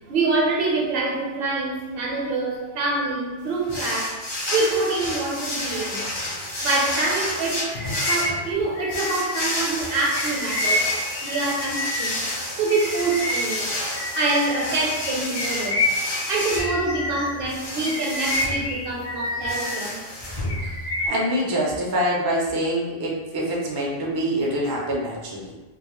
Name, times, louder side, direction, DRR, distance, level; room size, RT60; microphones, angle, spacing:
voice 1, 0.1-4.2 4.5-6.1 6.6-10.9 11.2-12.2 12.6-13.7 14.1-15.8 16.3-20.0, right 3 dB, 70° right, -2 dB, 0.8 m, -25 dB
sound 1, 3.7-21.1, left 1 dB, 30° left, 0.5 m, -30 dB
Bird vocalization bird call bird song, 7.7-12.3 12.7-17.4 17.8-19.9 20.2-21.3, left 2 dB, 80° left, 0.8 m, -29 dB
voice 2, 21.0-25.4, equal, 40° right, -3 dB, 0.3 m, -25 dB
2.2 x 2.0 x 2.9 m, 1.2 s
omnidirectional pair, 1.0 m